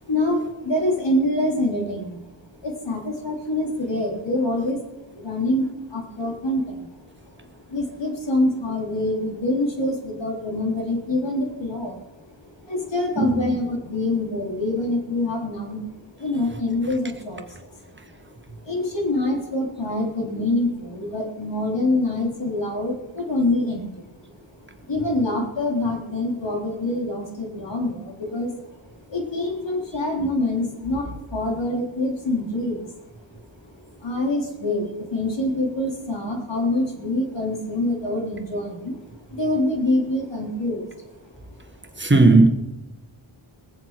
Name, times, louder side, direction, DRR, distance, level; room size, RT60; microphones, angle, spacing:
voice 1, 0.0-4.8 5.1-17.9 18.6-24.1 24.6-33.0 33.7-41.2 41.7-42.0, left 1 dB, 60° left, 4.0 m, -26 dB
voice 2, 42.0-42.5, right 3 dB, 25° right, 1.6 m, -14 dB
22.0 x 7.5 x 6.0 m
wide cardioid pair, 65°, 48 cm